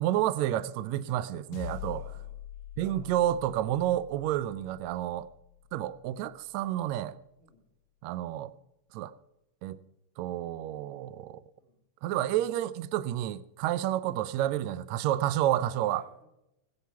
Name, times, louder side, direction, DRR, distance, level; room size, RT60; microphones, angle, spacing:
voice 1, 0.0-2.0 2.8-5.3 5.7-7.2 8.0-8.5 8.9-9.1 9.6-9.8 10.2-11.4 12.0-16.0, right 12 dB, 85° right, 1.6 m, -30 dB
sound 1, 1.5-6.1, left 11 dB, 85° left, 2.3 m, -44 dB
voice 2, 1.9-2.3 2.8-3.2 7.4-7.7 11.6-11.8 13.6-13.9 15.7-16.3, right 2 dB, 60° right, 6.1 m, -57 dB
21.5 x 8.3 x 4.6 m
omnidirectional pair, 3.9 m